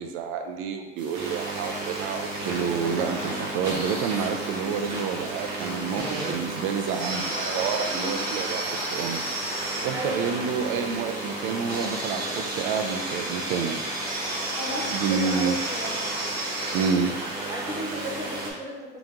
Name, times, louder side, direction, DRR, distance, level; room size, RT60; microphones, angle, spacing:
voice 1, 0.0-9.2 9.8-13.8 14.9-15.6 16.7-17.2, right 6 dB, 85° right, 5 dB, 0.4 m, -29 dB
sound 1, 1.0-18.5, right 2 dB, 55° right, 1.4 m, -31 dB
voice 2, 9.9-10.5 14.5-16.2 17.5-19.0, equal, 15° right, -4 dB, 0.9 m, -35 dB
3.6 x 2.9 x 3.6 m, 1.1 s
cardioid pair, 155°, 20 cm